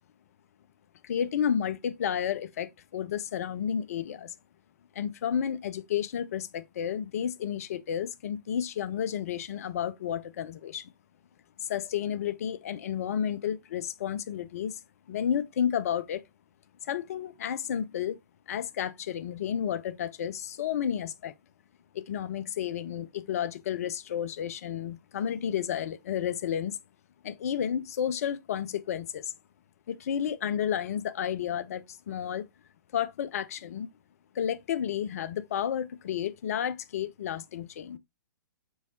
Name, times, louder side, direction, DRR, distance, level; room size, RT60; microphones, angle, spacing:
voice 1, 1.0-4.3 5.0-10.9 11.6-14.8 15.1-16.2 16.8-18.2 18.5-21.3 21.9-26.8 27.2-29.3 29.9-32.4 32.9-33.9 34.3-38.0, left 9 dB, 45° left, 0.4 m, -31 dB
4.7 x 4.1 x 2.6 m
figure-of-eight pair, 115°, 11 cm